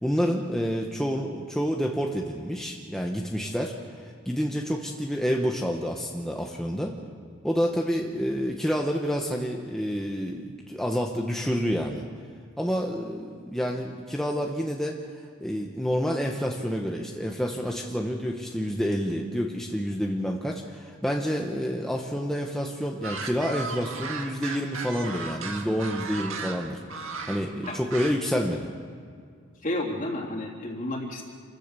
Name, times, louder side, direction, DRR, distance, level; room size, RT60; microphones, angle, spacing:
voice 1, 0.0-6.9 7.4-12.0 12.6-15.0 15.4-28.7, equal, ahead, 0 dB, 1.1 m, -28 dB
sound 1, 23.0-28.3, right 4 dB, 70° right, 1.9 m, -36 dB
voice 2, 29.6-31.2, left 1 dB, 40° left, -1 dB, 3.3 m, -31 dB
28.0 x 15.5 x 6.9 m, 2.1 s
head